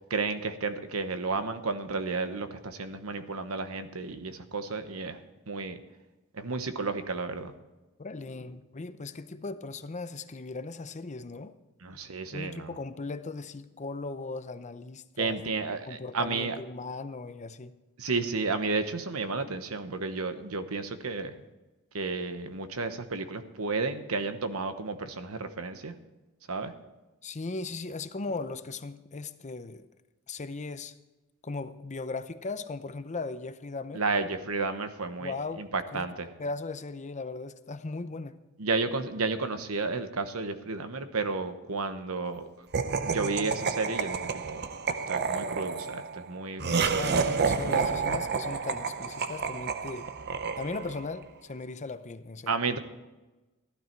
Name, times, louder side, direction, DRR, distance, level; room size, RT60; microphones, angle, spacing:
voice 1, 0.1-5.2 5.5-5.8 6.4-7.5 11.8-12.7 15.2-16.5 18.0-21.4 21.9-25.9 26.5-26.7 33.9-36.3 38.6-42.5 43.0-44.6 45.1-47.0 47.6-47.7 52.5-52.8, right 3 dB, 75° right, 9 dB, 1.1 m, -32 dB
voice 2, 8.0-11.5 12.3-15.5 15.9-17.7 27.2-29.9 30.3-30.9 31.4-34.0 35.2-35.6 35.9-36.1 36.4-38.4 46.6-50.1 50.6-52.6, left 3 dB, 35° left, 11 dB, 0.7 m, -38 dB
Laughter, 42.7-51.1, right 5 dB, 50° right, 0.7 m, -30 dB
15.5 x 12.0 x 4.6 m, 1.1 s
head